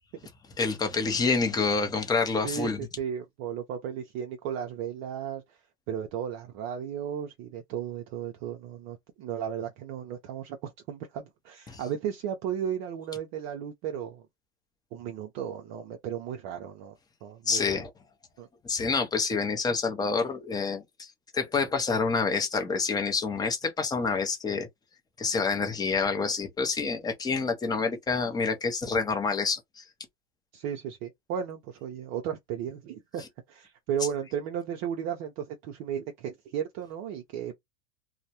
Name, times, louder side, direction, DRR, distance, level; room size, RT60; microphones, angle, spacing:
voice 1, 0.6-2.9 11.7-11.8 17.5-17.9 18.6-24.7 25.2-29.8, left 4 dB, 10° left, 0.6 m, -28 dB
voice 2, 2.4-5.6 5.9-14.2 14.9-16.9 17.2-17.8 18.4-18.5 30.5-37.6, right 9 dB, 45° right, 0.5 m, -35 dB
2.2 x 2.0 x 2.7 m
supercardioid pair, 125°, 32 cm